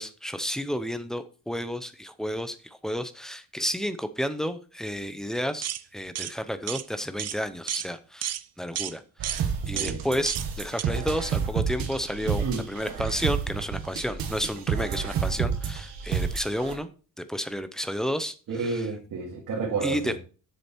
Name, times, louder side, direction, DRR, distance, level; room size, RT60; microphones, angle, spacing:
voice 1, 0.0-16.9 17.2-18.9 19.8-20.1, equal, ahead, 11 dB, 0.6 m, -31 dB
sound 1, 5.6-5.8 6.2-6.3 6.7-6.8 7.2-7.4 7.7-7.9 8.2-8.4 8.8-8.9 9.2-9.4 9.8-10.0 10.3-10.5 10.8-10.9, right 11 dB, 50° right, 0.5 m, -31 dB
sound 2, 9.2-16.8, right 7 dB, 85° right, 1.6 m, -29 dB
voice 2, 9.7-10.2 12.4-12.6 18.5-20.2, right 4 dB, 65° right, -3 dB, 2.3 m, -31 dB
7.5 x 6.8 x 4.4 m, 0.37 s
cardioid pair, 140°, 34 cm